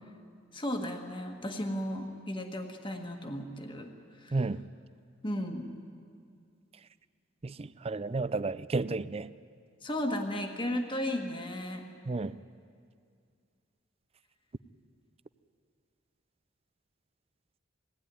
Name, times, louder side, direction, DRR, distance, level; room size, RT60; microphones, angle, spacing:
voice 1, 0.5-3.9 4.2-4.4 5.2-5.7 9.8-11.9, left 1 dB, 25° left, 4 dB, 1.6 m, -35 dB
voice 2, 4.3-4.6 7.4-9.3 12.1-12.3, right 3 dB, 30° right, 16 dB, 0.4 m, -32 dB
20.5 x 16.5 x 9.8 m, 2.3 s
head